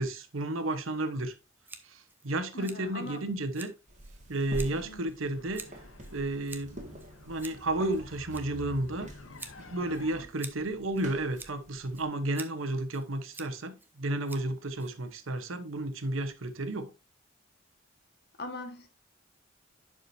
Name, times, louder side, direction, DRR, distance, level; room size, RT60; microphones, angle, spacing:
voice 1, 0.0-1.3 1.8-3.7 4.3-5.6 6.1-6.9 7.3-9.1 9.6-16.9, right 1 dB, 85° right, 1.1 m, -32 dB
Scissors, 1.6-15.4, right 3 dB, 10° right, 0.7 m, -50 dB
voice 2, 2.5-3.3 4.7-5.1 18.4-18.9, left 2 dB, 55° left, 1.6 m, -41 dB
sound 1, 3.9-12.1, right 1 dB, 40° right, 2.0 m, -47 dB
sound 2, 5.2-10.2, left 2 dB, 85° left, 0.9 m, -49 dB
11.0 x 5.0 x 2.7 m
head